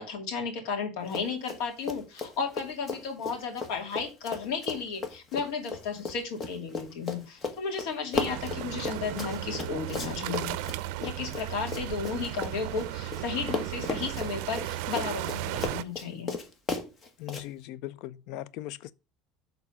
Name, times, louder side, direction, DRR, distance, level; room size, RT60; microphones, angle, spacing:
voice 1, 0.0-10.6 11.0-16.3, left 5 dB, 85° left, 2.4 m, -34 dB
Run, 1.1-1.6 1.9-13.2 13.5-17.4, left 4 dB, 30° left, 1.3 m, -35 dB
sound 1, 8.1-15.8, right 14 dB, 80° right, 0.4 m, -35 dB
voice 2, 17.2-18.9, left 14 dB, 70° left, 0.4 m, -39 dB
6.7 x 3.9 x 5.9 m
cardioid pair, 135°, 0 cm